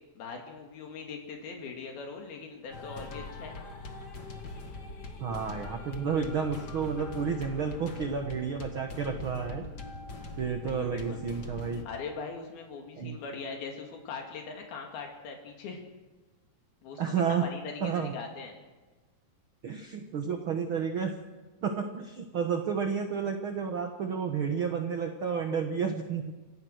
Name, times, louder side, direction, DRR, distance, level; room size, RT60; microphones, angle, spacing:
voice 1, 0.2-3.6 10.6-11.2 11.9-15.8 16.8-18.6, left 5 dB, 80° left, 2 dB, 4.1 m, -41 dB
sound 1, 2.7-11.8, left 3 dB, 45° left, 1.5 m, -42 dB
voice 2, 5.2-9.6 10.4-11.8 13.0-13.2 17.0-17.5 17.8-18.1 19.6-21.1 21.6-26.3, right 6 dB, 65° right, 5 dB, 1.2 m, -31 dB
27.0 x 15.0 x 6.5 m, 1.3 s
omnidirectional pair, 4.2 m